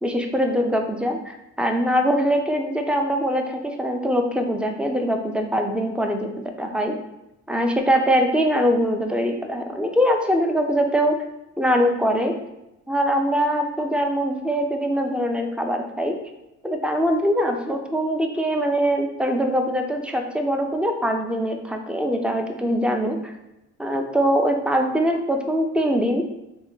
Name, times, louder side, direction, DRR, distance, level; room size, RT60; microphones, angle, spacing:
voice 1, 0.0-6.3 6.6-6.9 7.5-11.2 11.6-12.3 12.9-16.2 16.6-23.3 23.8-26.2, equal, 5° right, 4 dB, 0.4 m, -22 dB
3.3 x 2.2 x 3.8 m, 0.93 s
cardioid pair, 90°, 30 cm